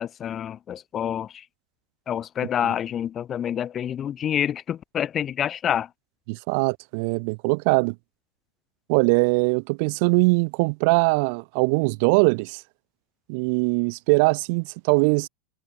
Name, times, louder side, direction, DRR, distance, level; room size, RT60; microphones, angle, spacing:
voice 1, 0.0-1.5 2.1-5.9, left 9 dB, 25° left, 1.0 m, -27 dB
voice 2, 6.3-7.9 8.9-12.6 13.3-15.3, right 32 dB, 55° right, 1.0 m, -21 dB
supercardioid pair, 145°, 0 cm